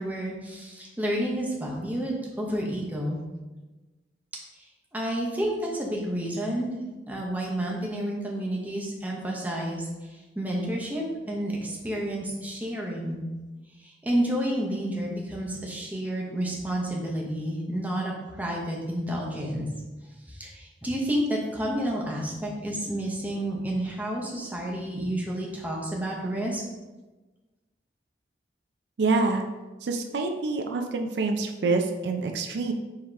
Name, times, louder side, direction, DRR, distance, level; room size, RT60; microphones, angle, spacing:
voice 1, 0.0-3.2 4.9-6.7 7.1-13.2 13.8-19.7 20.3-26.6, right 1 dB, 10° right, -3 dB, 0.7 m, -30 dB
voice 2, 29.0-29.4 29.8-32.7, right 3 dB, 75° right, 5 dB, 0.4 m, -26 dB
4.8 x 2.9 x 3.4 m, 1.2 s
head